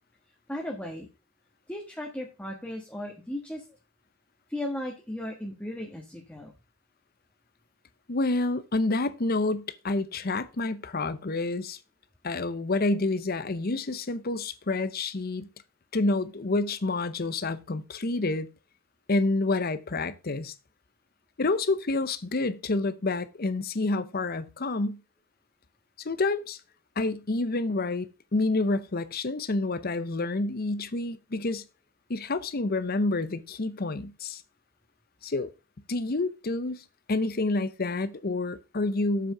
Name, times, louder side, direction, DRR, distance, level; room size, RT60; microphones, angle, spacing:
voice 1, 0.5-1.1 1.7-3.6 4.5-6.5, left 1 dB, 5° left, 1.4 m, -36 dB
voice 2, 8.1-11.8 12.2-15.5 15.9-18.5 19.1-20.5 21.4-25.0 26.0-26.6 27.0-31.6 32.1-34.4 35.2-35.5 35.9-39.3, left 2 dB, 45° left, 0.8 m, -28 dB
7.6 x 6.2 x 5.5 m
head